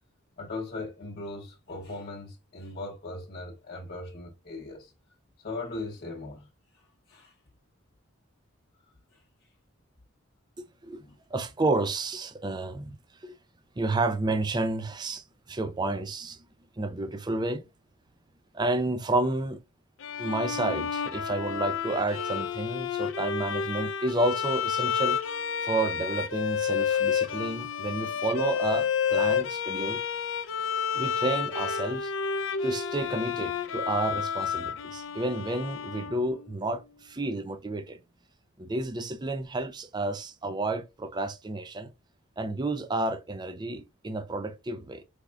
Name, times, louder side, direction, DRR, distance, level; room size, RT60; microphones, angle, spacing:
voice 1, 0.4-4.9 5.4-6.5 7.1-7.3 9.1-9.2 11.0-11.2, left 2 dB, 45° left, 0.8 m, -39 dB
voice 2, 11.3-12.9 13.2-13.3 13.8-16.4 16.8-17.6 18.5-19.6 20.2-25.2 25.6-30.0 30.9-32.1 32.6-38.0 38.6-41.9 42.4-45.0, right 2 dB, 20° right, 0.4 m, -30 dB
Bowed string instrument, 20.0-36.6, left 7 dB, 65° left, 0.5 m, -30 dB
4.8 x 3.5 x 2.3 m
head